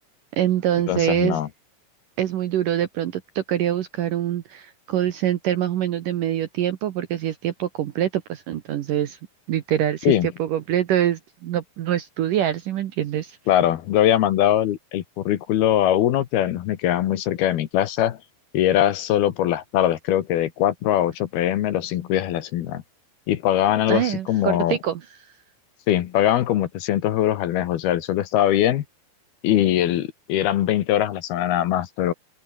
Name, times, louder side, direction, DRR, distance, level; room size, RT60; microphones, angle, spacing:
voice 1, 0.3-1.4 2.2-9.2 9.5-13.4 23.9-25.0, right 11 dB, 65° right, 2.2 m, -24 dB
voice 2, 0.9-1.5 10.1-10.3 13.5-18.2 18.5-22.8 23.3-24.8 25.9-28.8 29.4-32.1, left 12 dB, 70° left, 3.0 m, -21 dB
open air
omnidirectional pair, 5.1 m